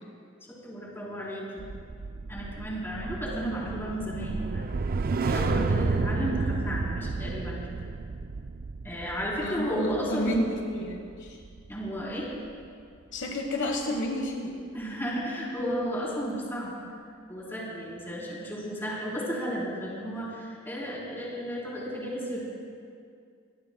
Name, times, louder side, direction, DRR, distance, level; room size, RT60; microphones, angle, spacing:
voice 1, 0.5-1.7 2.3-4.6 5.2-7.6 8.8-10.4 11.7-12.3 14.7-16.8 17.3-22.4, equal, 10° left, -5 dB, 3.9 m, -33 dB
sound 1, 1.6-12.0 12.3-12.6, right 4 dB, 45° right, 0.4 m, -32 dB
voice 2, 9.4-11.4 13.1-14.5, left 1 dB, 60° left, 2 dB, 1.3 m, -31 dB
25.0 x 19.0 x 2.3 m, 2.3 s
head